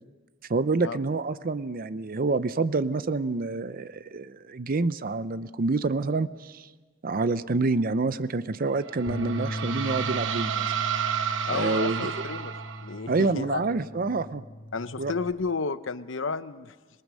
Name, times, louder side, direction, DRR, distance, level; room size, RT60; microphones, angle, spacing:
voice 1, 0.5-6.7 7.0-10.7 11.5-12.1 13.1-14.4 15.0-15.1, right 3 dB, 50° right, 15 dB, 0.6 m, -27 dB
sound 1, 8.7-13.1, right 8 dB, 70° right, 0.9 m, -31 dB
Bass guitar, 9.1-15.3, equal, 45° left, 1.7 m, -38 dB
voice 2, 11.5-12.5 12.8-13.7 14.7-16.7, left 4 dB, 80° left, 12 dB, 0.8 m, -31 dB
26.0 x 19.0 x 6.3 m, 1.3 s
head